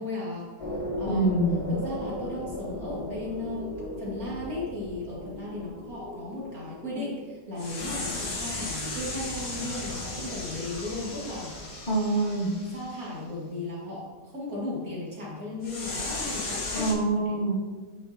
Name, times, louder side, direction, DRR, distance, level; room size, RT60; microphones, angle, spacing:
voice 1, 0.0-1.4 1.7-11.8 12.7-17.0 17.3-17.5, left 2 dB, 50° right, -5 dB, 2.4 m, -36 dB
sound 1, 0.6-7.0 7.6-13.0 15.6-16.9, left 2 dB, 70° left, 2.3 m, -36 dB
voice 2, 1.1-1.7 11.9-12.5 16.7-17.5, right 2 dB, 35° left, -7 dB, 1.2 m, -25 dB
9.0 x 5.7 x 2.9 m, 1.4 s
omnidirectional pair, 1.9 m